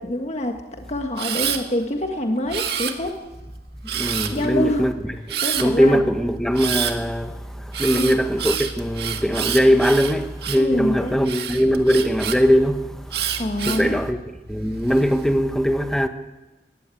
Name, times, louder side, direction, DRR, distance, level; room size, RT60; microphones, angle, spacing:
voice 1, 0.0-3.2 4.3-4.9 5.4-6.0 7.9-8.2 10.6-11.2 13.4-14.0, left 1 dB, 40° left, 1.6 m, -25 dB
Camera, 1.2-1.6 2.5-3.3 3.9-4.5 5.3-5.7 6.5-6.9 7.7-10.7 11.2-12.4 13.1-13.9 14.5-15.0, right 9 dB, 65° right, 1.9 m, -27 dB
voice 2, 3.9-4.9 5.3-14.2 14.5-16.1, equal, 5° left, 1.2 m, -21 dB
19.0 x 16.0 x 9.1 m
head